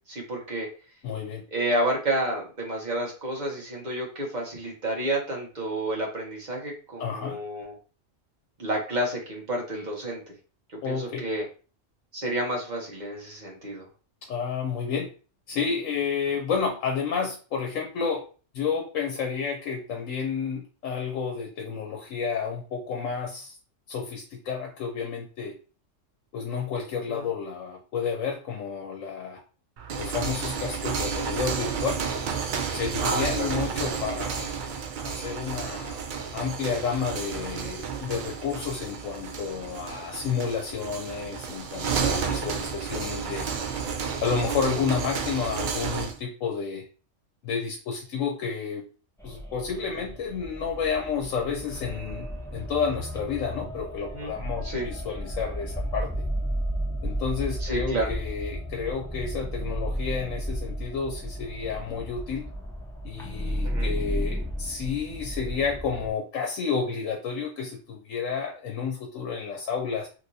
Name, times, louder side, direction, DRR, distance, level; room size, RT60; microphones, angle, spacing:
voice 1, 0.1-0.7 1.5-7.8 8.6-10.2 10.7-11.5 12.1-13.9 16.3-16.4 27.1-27.3 33.0-33.5 44.5-44.6 54.1-54.3 54.6-54.9 57.6-58.1 63.6-63.9, right 1 dB, 35° right, -2 dB, 1.1 m, -30 dB
voice 2, 1.0-1.4 7.0-7.4 10.8-11.2 14.3-15.1 15.5-18.2 18.5-23.5 23.9-25.5 26.3-29.4 30.0-32.0 32.7-34.5 35.0-36.0 36.3-43.5 44.2-46.8 47.4-48.8 49.2-56.1 57.0-62.4 63.0-70.1, left 6 dB, 75° left, 1 dB, 1.0 m, -30 dB
sound 1, 29.8-46.2, right 6 dB, 70° right, 0.4 m, -31 dB
sound 2, 49.2-66.1, equal, 5° left, 0.4 m, -33 dB
2.9 x 2.9 x 2.7 m, 0.37 s
omnidirectional pair, 1.3 m